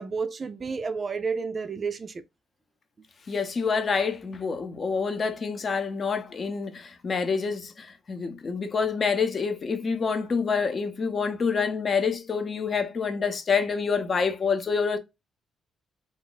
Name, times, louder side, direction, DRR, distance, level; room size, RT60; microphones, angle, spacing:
voice 1, 0.0-2.2, right 5 dB, 35° right, 0.4 m, -31 dB
voice 2, 3.3-15.0, left 5 dB, 40° left, 0.7 m, -27 dB
2.6 x 2.5 x 3.8 m
cardioid pair, 90°, 0 cm